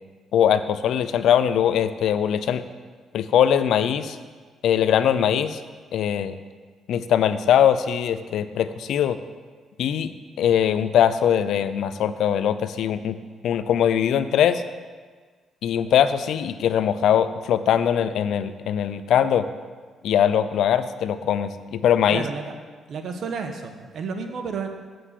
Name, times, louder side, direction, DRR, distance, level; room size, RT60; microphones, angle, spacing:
voice 1, 0.3-2.6 3.1-4.2 4.6-5.6 5.9-6.3 6.9-9.2 9.8-10.1 10.4-13.2 13.4-14.6 15.6-19.5 20.0-22.2, left 9 dB, 75° left, 12 dB, 0.5 m, -21 dB
voice 2, 22.1-22.5 22.9-24.7, right 5 dB, 60° right, 5 dB, 1.3 m, -31 dB
7.7 x 7.3 x 8.3 m, 1.5 s
cardioid pair, 90°, 0 cm